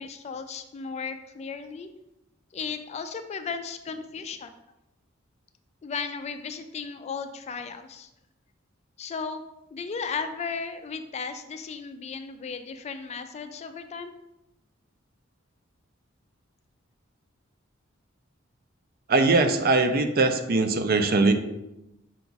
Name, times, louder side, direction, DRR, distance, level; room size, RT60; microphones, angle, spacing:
voice 1, 0.0-1.9 2.5-4.5 5.8-8.1 9.0-9.4 9.7-14.1, left 5 dB, 35° left, 8 dB, 0.3 m, -35 dB
voice 2, 19.1-21.3, right 3 dB, 45° right, 8 dB, 0.4 m, -21 dB
5.8 x 2.3 x 3.9 m, 0.92 s
head